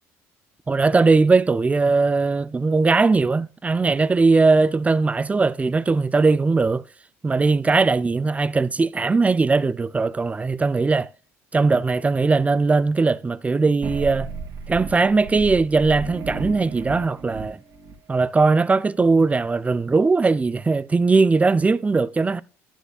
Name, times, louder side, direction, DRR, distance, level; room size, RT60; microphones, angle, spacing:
voice 1, 0.7-6.8 7.2-11.1 11.5-14.3 14.7-17.6 18.1-22.4, right 3 dB, 20° right, 0.5 m, -19 dB
sound 1, 13.8-17.9, right 5 dB, 60° right, 2.5 m, -34 dB
11.0 x 10.0 x 2.4 m
hypercardioid pair, 70°, 7 cm